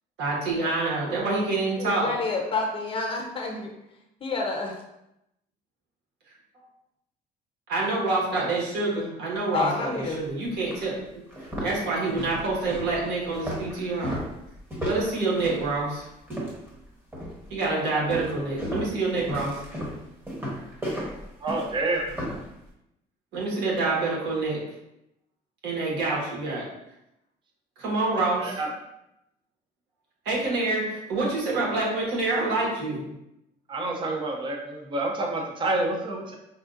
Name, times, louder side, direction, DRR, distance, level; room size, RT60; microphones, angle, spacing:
voice 1, 0.2-2.1 7.7-11.0 11.6-14.2 14.8-16.0 17.5-19.6 23.3-24.6 25.6-26.6 27.8-28.6 30.2-33.1, right 3 dB, 85° right, -4 dB, 1.4 m, -27 dB
voice 2, 1.8-3.7 4.2-4.7 9.5-10.2, left 3 dB, 35° left, 1 dB, 0.8 m, -28 dB
sound 1, 10.1-10.2 10.7-10.8 11.3-16.8 17.1-17.5 18.1-22.5, equal, 10° right, 1.2 m, -34 dB
voice 3, 21.4-22.1 28.4-28.7 33.7-36.4, right 2 dB, 30° right, 1 dB, 0.6 m, -28 dB
5.4 x 2.4 x 2.5 m, 0.84 s
cardioid pair, 110°, 17 cm